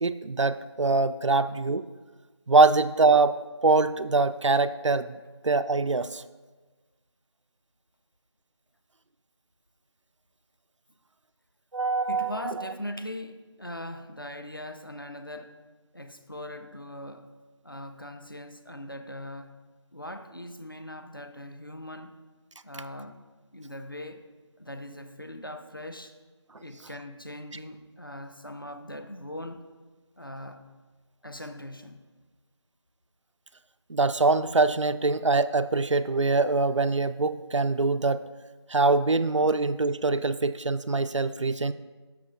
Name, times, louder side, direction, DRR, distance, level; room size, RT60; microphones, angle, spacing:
voice 1, 0.0-1.9 2.5-3.4 3.6-5.2 5.4-6.2 11.7-12.5 33.9-38.3 38.7-41.7, right 3 dB, 85° right, 13 dB, 0.4 m, -23 dB
voice 2, 12.1-15.5 15.9-17.3 17.6-19.6 19.9-22.1 22.6-23.2 23.5-24.2 24.6-26.1 26.6-29.7 30.2-30.7 31.2-32.0, left 1 dB, 50° left, 7 dB, 0.5 m, -40 dB
13.0 x 6.0 x 2.4 m, 1.3 s
figure-of-eight pair, 175°, 15 cm